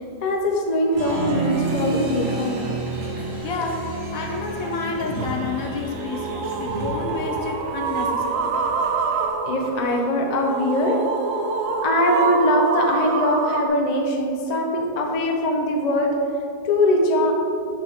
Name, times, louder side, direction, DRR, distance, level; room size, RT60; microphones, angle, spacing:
voice 1, 0.2-2.7 9.4-11.0 11.8-16.1 16.6-17.3, left 1 dB, 40° left, 0 dB, 0.6 m, -21 dB
Applause, 0.9-9.3, right 2 dB, 55° right, 1.5 m, -31 dB
voice 2, 3.4-8.6, left 4 dB, 65° left, 2 dB, 1.1 m, -30 dB
sound 1, 5.2-13.7, right 5 dB, 85° right, 1.1 m, -26 dB
7.9 x 5.8 x 3.6 m, 2.5 s
omnidirectional pair, 1.7 m